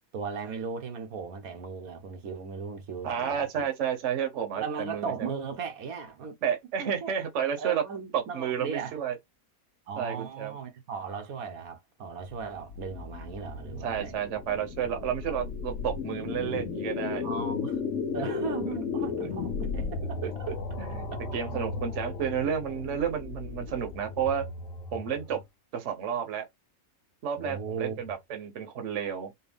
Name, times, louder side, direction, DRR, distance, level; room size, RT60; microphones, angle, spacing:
voice 1, 0.1-3.6 4.5-6.4 6.8-7.1 7.6-9.0 9.9-14.1 17.2-17.8 18.1-20.5 21.5-21.8 27.4-28.0, right 5 dB, 90° right, 1.5 m, -37 dB
voice 2, 3.0-5.3 6.4-7.8 8.1-9.2 10.0-10.6 13.8-17.3 20.2-21.1 21.3-24.5 24.9-25.4 25.7-26.5 27.2-29.3, right 8 dB, 60° right, 1.1 m, -31 dB
sound 1, 12.2-25.4, left 5 dB, 75° left, 1.1 m, -35 dB
4.5 x 2.3 x 3.4 m
omnidirectional pair, 1.4 m